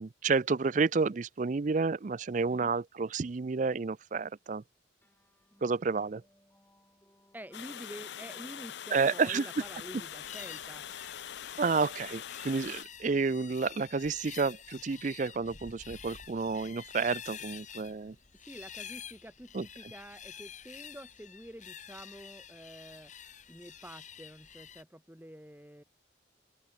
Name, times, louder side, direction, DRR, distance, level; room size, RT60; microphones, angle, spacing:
voice 1, 0.0-4.6 5.6-6.2 8.9-9.5 11.6-18.2 19.5-19.7, right 4 dB, 40° right, 0.4 m, -30 dB
sound 1, 5.0-11.9, left 1 dB, 10° left, 4.9 m, -69 dB
voice 2, 7.3-10.8 18.3-23.1 23.5-25.8, equal, 10° right, 2.8 m, -48 dB
Water, 7.5-12.8, left 10 dB, 65° left, 0.4 m, -43 dB
sound 2, 9.6-24.8, left 8 dB, 40° left, 3.3 m, -49 dB
open air
head